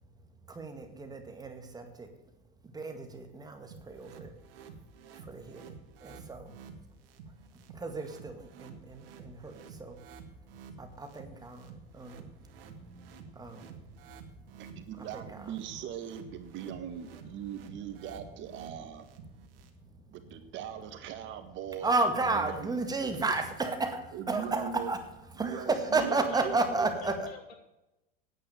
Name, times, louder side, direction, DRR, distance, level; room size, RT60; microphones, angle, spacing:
voice 1, 0.5-2.1 2.7-4.3 5.1-6.5 7.7-10.0 10.8-12.3 12.8-13.0 13.3-13.7 15.1-15.2 21.8-25.0 25.4-27.3, right 3 dB, 15° right, 6 dB, 1.9 m, -33 dB
sound 1, 3.7-19.7, right 5 dB, 70° right, 2.1 m, -51 dB
voice 2, 14.7-19.1 20.1-21.9 22.3-22.7 24.1-24.9 25.4-26.9, right 9 dB, 40° right, 9 dB, 1.8 m, -40 dB
voice 3, 25.9-26.5 26.7-27.5, left 6 dB, 90° left, 6 dB, 3.3 m, -46 dB
9.5 x 8.6 x 9.1 m, 0.91 s
supercardioid pair, 125°, 30 cm